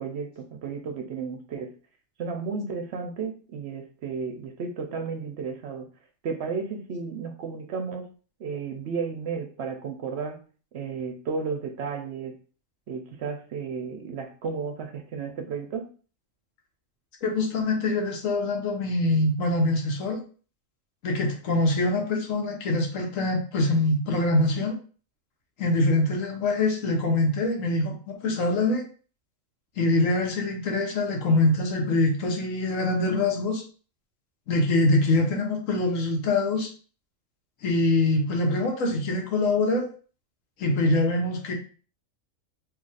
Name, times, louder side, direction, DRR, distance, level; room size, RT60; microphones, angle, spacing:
voice 1, 0.0-1.7 2.2-5.9 6.2-8.1 8.4-10.4 10.7-12.4 12.9-15.9, right 5 dB, 65° right, 5 dB, 0.8 m, -33 dB
voice 2, 17.2-20.2 21.0-24.8 25.6-28.8 29.8-33.6 34.5-36.7 37.6-39.9 40.6-41.5, left 2 dB, 85° left, 2 dB, 1.3 m, -24 dB
2.8 x 2.3 x 4.0 m, 0.39 s
omnidirectional pair, 1.3 m